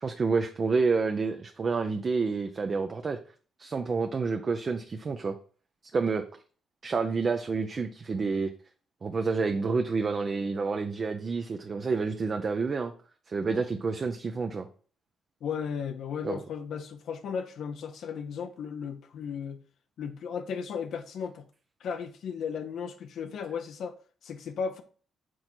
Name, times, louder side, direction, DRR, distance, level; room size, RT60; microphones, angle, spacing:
voice 1, 0.0-3.2 3.6-5.3 5.9-6.2 6.8-8.5 9.0-12.9 13.3-14.7 16.2-16.4, right 4 dB, 40° right, 0.5 m, -29 dB
voice 2, 15.4-19.6 20.0-21.4 21.8-23.9 24.2-24.8, left 6 dB, 70° left, 0.6 m, -35 dB
6.2 x 3.9 x 4.4 m
cardioid pair, 90°, 0 cm